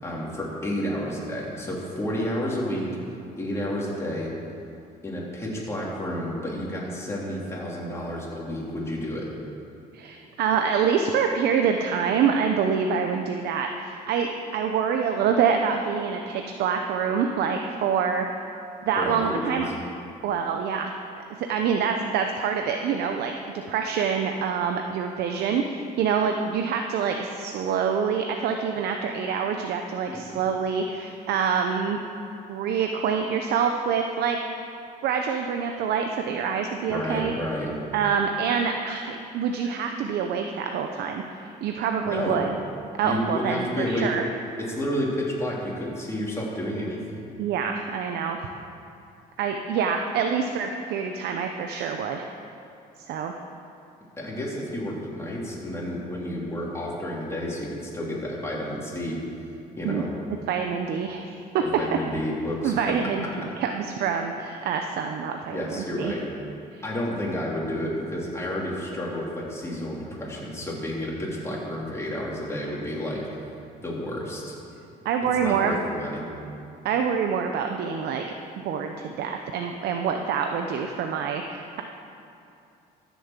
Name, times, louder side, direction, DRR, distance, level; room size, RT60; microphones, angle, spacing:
voice 1, 0.0-2.9 3.4-4.3 5.0-9.3 19.0-19.6 36.9-37.7 42.1-42.4 43.0-44.1 44.6-47.3 54.2-59.2 59.8-60.1 61.6-62.7 65.5-66.2 66.8-73.2 73.8-74.5 75.4-76.2, equal, 15° left, -5 dB, 3.5 m, -30 dB
voice 2, 9.9-18.4 18.8-19.7 20.2-20.9 21.4-23.3 23.7-32.0 32.5-34.4 35.0-37.3 37.9-42.6 43.0-44.3 47.4-48.4 49.4-52.3 53.0-53.4 59.8-60.0 60.5-61.6 61.9-62.0 62.6-66.1 66.7-66.8 75.0-75.7 76.8-78.3 78.6-81.8, right 6 dB, 75° right, 4 dB, 0.8 m, -26 dB
14.0 x 7.3 x 7.4 m, 2.7 s
cardioid pair, 110°, 17 cm